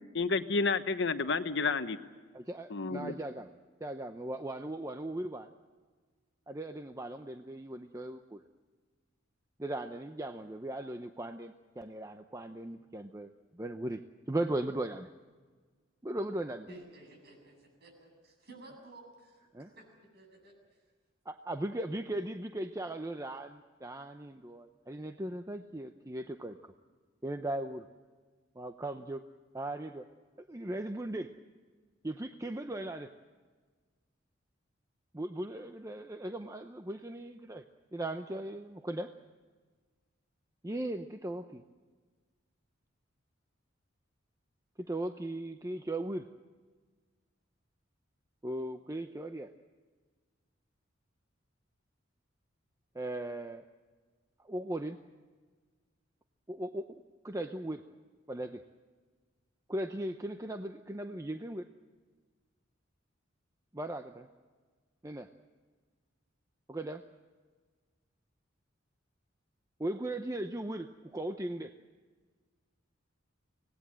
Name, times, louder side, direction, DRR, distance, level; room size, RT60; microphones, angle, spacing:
voice 1, 0.1-2.0 2.7-3.1, left 4 dB, 65° left, 1.1 m, -30 dB
voice 2, 2.3-3.5 3.8-5.5 6.5-8.4 9.6-15.1 16.0-16.7 19.5-19.7 21.3-26.7 27.2-27.9 28.5-29.2 29.5-30.0 30.5-31.3 32.0-33.1 35.1-37.6 37.9-39.1 40.6-41.6 44.8-46.3 48.4-49.5 52.9-53.6 54.4-55.0 56.5-56.9 57.2-57.8 58.3-58.6 59.7-61.7 63.7-64.3 65.0-65.3 66.7-67.0 69.8-71.7, right 1 dB, 15° right, 0.8 m, -38 dB
voice 3, 16.7-19.9 20.1-20.8, right 1 dB, 55° right, 7.8 m, -54 dB
25.5 x 19.0 x 7.6 m
head